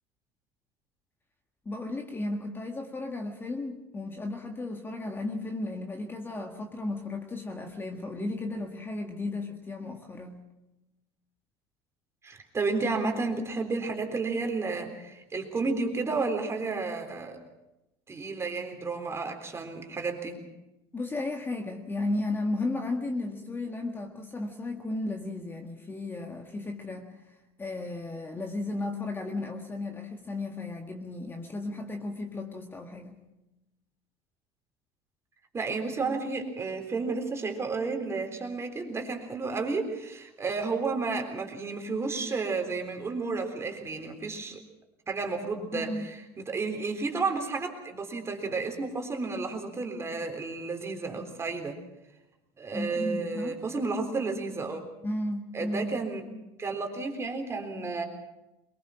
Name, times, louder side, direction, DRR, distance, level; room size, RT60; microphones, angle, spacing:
voice 1, 1.7-10.4 20.9-33.2 45.7-46.1 52.7-53.6 55.0-55.9, left 2 dB, 20° left, 3 dB, 1.8 m, -34 dB
voice 2, 12.2-17.4 18.1-20.4 35.5-44.6 45.1-51.8 52.6-54.8 55.5-56.2 56.6-58.0, right 4 dB, 20° right, 4 dB, 3.7 m, -32 dB
23.0 x 21.5 x 6.1 m, 0.95 s
supercardioid pair, 120°, 12 cm